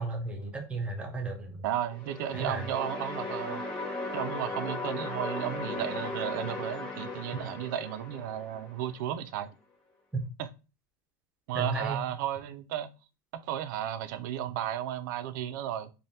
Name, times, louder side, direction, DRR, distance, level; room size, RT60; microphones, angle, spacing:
voice 1, 0.0-1.6 2.3-2.6 10.1-10.2 11.5-12.0, right 3 dB, 10° right, 0.5 m, -33 dB
voice 2, 1.6-3.6 4.1-9.5 10.4-10.5 11.5-12.9 13.4-15.9, right 11 dB, 70° right, 0.4 m, -34 dB
sound 1, 1.9-8.9, left 2 dB, 10° left, 1.0 m, -37 dB
3.3 x 2.1 x 2.6 m
supercardioid pair, 155°, 10 cm